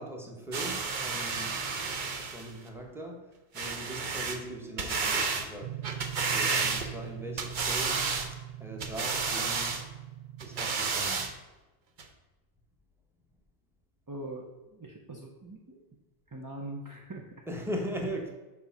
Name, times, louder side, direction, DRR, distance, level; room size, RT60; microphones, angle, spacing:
voice 1, 0.0-3.3 3.5-5.8 6.2-8.1 8.6-9.9 10.4-11.3 17.5-18.3, equal, ahead, 0 dB, 1.1 m, -40 dB
sound 1, 0.5-2.5 3.5-4.4 4.8-5.5 5.8-7.1 7.4-8.3 8.8-9.8 10.4-11.3 12.0-12.1, right 4 dB, 50° right, 0.8 m, -31 dB
sound 2, 5.6-10.7, right 13 dB, 75° right, 0.9 m, -42 dB
voice 2, 14.1-14.5 14.7-15.8 16.3-17.4, right 1 dB, 20° right, -1 dB, 0.6 m, -42 dB
7.2 x 4.0 x 5.8 m, 1.1 s
omnidirectional pair, 1.2 m